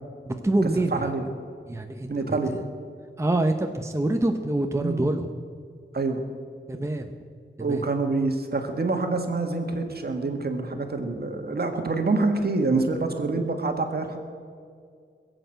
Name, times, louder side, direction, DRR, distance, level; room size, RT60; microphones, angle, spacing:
voice 1, 0.3-1.1 1.7-2.4 3.2-5.3 6.7-7.1 7.6-7.8, right 2 dB, 15° right, 5 dB, 0.8 m, -26 dB
voice 2, 0.9-1.3 2.1-2.6 4.8-5.0 5.9-6.2 7.6-14.2, right 3 dB, 55° right, 5 dB, 1.7 m, -26 dB
21.0 x 8.0 x 7.9 m, 2.1 s
wide cardioid pair, 110°, 20 cm